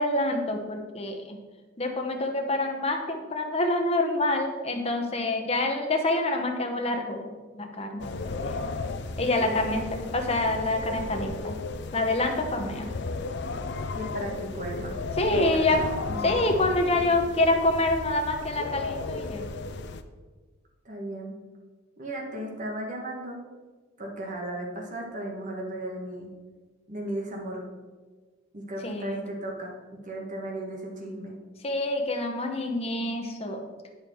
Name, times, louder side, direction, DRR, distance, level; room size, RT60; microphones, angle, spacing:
voice 1, 0.0-1.4 1.8-8.7 9.2-9.8 10.1-11.5 11.9-12.9 15.2-15.8 16.2-19.5 28.8-29.2 31.6-33.6, left 2 dB, 30° left, 3 dB, 1.0 m, -26 dB
sound 1, 8.0-20.0, left 3 dB, 60° left, 0.5 m, -35 dB
voice 2, 9.3-10.1 13.9-14.9 15.3-15.6 15.8-16.3 20.8-21.3 22.0-23.4 24.0-26.3 26.9-27.6 28.5-29.7 30.0-31.3, right 1 dB, 40° right, 0 dB, 1.6 m, -36 dB
10.0 x 5.5 x 4.6 m, 1.4 s
head